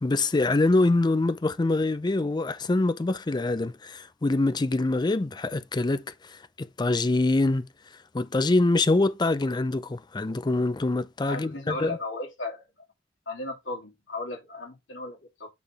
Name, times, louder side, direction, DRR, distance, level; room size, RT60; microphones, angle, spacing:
voice 1, 0.0-6.0 6.3-7.7 8.1-12.0, left 2 dB, 25° left, 0.4 m, -24 dB
voice 2, 11.3-12.6 13.3-15.5, left 2 dB, 85° left, 2.8 m, -35 dB
8.2 x 3.8 x 3.4 m
head